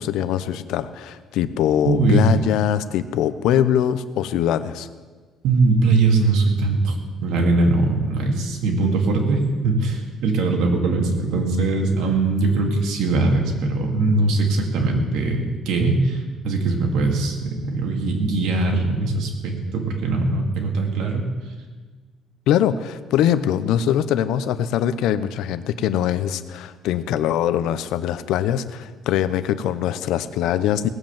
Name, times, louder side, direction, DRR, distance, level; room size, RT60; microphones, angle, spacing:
voice 1, 0.0-4.9 22.5-30.9, left 10 dB, 80° left, 13 dB, 0.7 m, -22 dB
voice 2, 1.8-2.2 5.4-21.3, right 3 dB, 75° right, 2 dB, 2.5 m, -21 dB
18.5 x 7.9 x 7.3 m, 1.4 s
cardioid pair, 175°, 0 cm